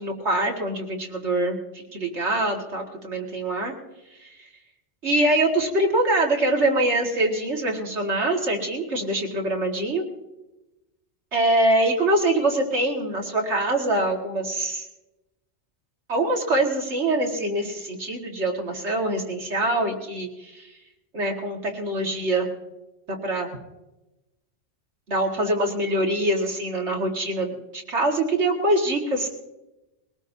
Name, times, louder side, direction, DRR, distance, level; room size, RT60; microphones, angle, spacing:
voice 1, 0.0-3.7 4.2-4.3 5.0-10.0 11.3-14.9 16.1-20.6 21.1-22.5 23.1-23.5 25.1-29.3, right 1 dB, 80° right, 0 dB, 2.2 m, -24 dB
21.5 x 18.0 x 2.7 m, 0.99 s
omnidirectional pair, 1.2 m